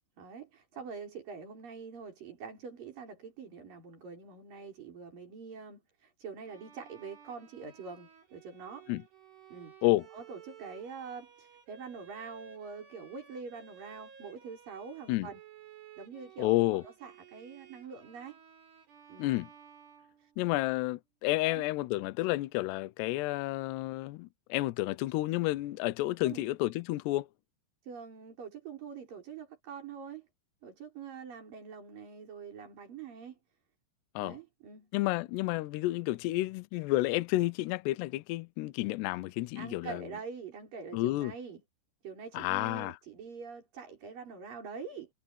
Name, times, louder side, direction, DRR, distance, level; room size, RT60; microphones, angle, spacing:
voice 1, 0.2-8.9 9.5-15.4 16.0-16.5 16.8-18.4 19.1-19.3 20.2-20.3 21.4-21.6 26.2-26.5 27.8-30.3 30.6-33.4 34.2-34.9 39.6-41.6 42.0-45.1, right 5 dB, 45° right, 6.6 m, -45 dB
Bowed string instrument, 6.4-20.7, right 8 dB, 80° right, 9.2 m, -56 dB
voice 2, 16.4-16.8 19.2-19.5 20.4-27.3 34.2-34.4 34.9-40.1 40.9-41.3 42.3-43.0, left 18 dB, 80° left, 2.6 m, -30 dB
omnidirectional pair, 5.5 m